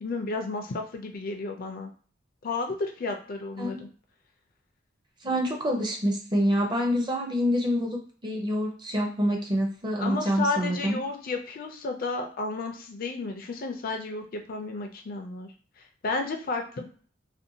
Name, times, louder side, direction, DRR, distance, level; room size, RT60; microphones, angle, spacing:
voice 1, 0.0-1.9 2.4-3.9 10.0-15.5 15.8-16.9, left 3 dB, 45° left, 4 dB, 0.4 m, -32 dB
voice 2, 5.2-11.0, equal, 25° right, 1 dB, 0.6 m, -26 dB
2.6 x 2.2 x 2.7 m, 0.43 s
head